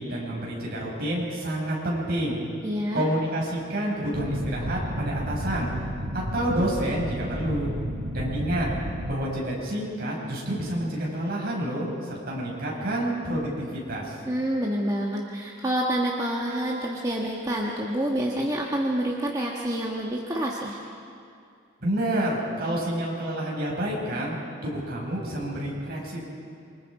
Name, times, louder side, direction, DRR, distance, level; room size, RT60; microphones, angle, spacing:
voice 1, 0.0-2.4 2.9-5.7 6.1-7.7 8.1-8.7 9.1-14.2 21.8-24.3 24.6-26.2, right 1 dB, 50° right, -4 dB, 6.7 m, -28 dB
voice 2, 2.6-3.1 14.3-20.8, right 1 dB, 20° right, -3 dB, 1.5 m, -27 dB
sound 1, 4.1-9.1, equal, 70° right, 4.1 m, -32 dB
27.5 x 24.5 x 4.9 m, 2.4 s
head